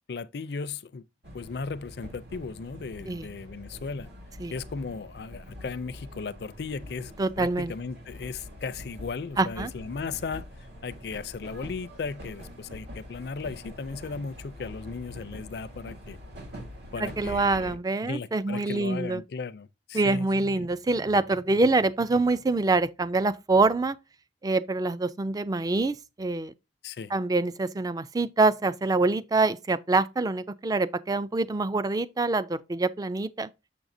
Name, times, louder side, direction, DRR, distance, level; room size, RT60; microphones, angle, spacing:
voice 1, 0.1-1.0 1.3-4.1 4.5-7.1 7.4-10.4 10.8-16.2 16.9-17.8 18.0-20.3 20.6-20.7 26.8-27.1, left 4 dB, 60° left, 0.4 m, -36 dB
sound 1, 1.2-17.7, left 1 dB, 70° right, 2.3 m, -44 dB
voice 2, 7.2-7.7 9.4-9.7 17.0-19.2 19.9-24.0 24.4-26.5 27.1-33.5, right 3 dB, 20° right, 0.3 m, -25 dB
7.0 x 6.0 x 2.6 m
head